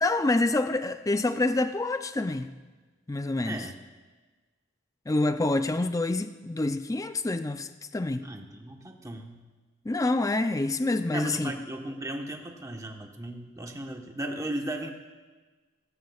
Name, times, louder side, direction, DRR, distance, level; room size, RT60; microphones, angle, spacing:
voice 1, 0.0-2.5 3.1-3.6 5.1-8.2 9.9-11.5, left 2 dB, 20° left, 10 dB, 0.4 m, -27 dB
voice 2, 3.4-3.7 8.2-9.4 11.1-14.9, right 1 dB, 15° right, 2 dB, 1.1 m, -36 dB
17.0 x 16.0 x 2.4 m, 1.3 s
head